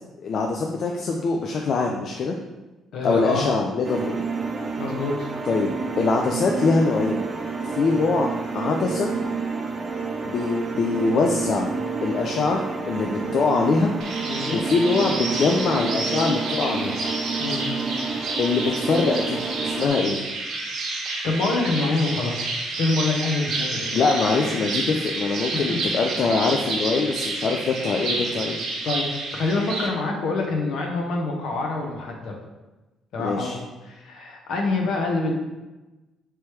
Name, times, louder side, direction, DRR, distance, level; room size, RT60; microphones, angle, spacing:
voice 1, 0.2-2.3 3.0-4.2 5.5-5.7 6.0-7.3 7.6-9.1 10.3-11.7 12.0-13.9 14.5-17.0 18.4-20.2 23.9-28.6 33.2-33.6, left 4 dB, 55° left, 1 dB, 0.4 m, -23 dB
voice 2, 2.9-3.4 4.8-5.3 14.3-14.6 17.4-17.7 21.2-23.9 25.5-25.8 28.8-29.1 29.3-32.4 33.1-35.3, left 3 dB, 70° left, 1 dB, 0.9 m, -26 dB
sound 1, 3.8-19.9, right 4 dB, 30° right, 0.5 m, -29 dB
sound 2, 14.0-29.9, right 3 dB, 65° right, 0.9 m, -30 dB
3.4 x 3.0 x 4.5 m, 1.1 s
cardioid pair, 95°, 0 cm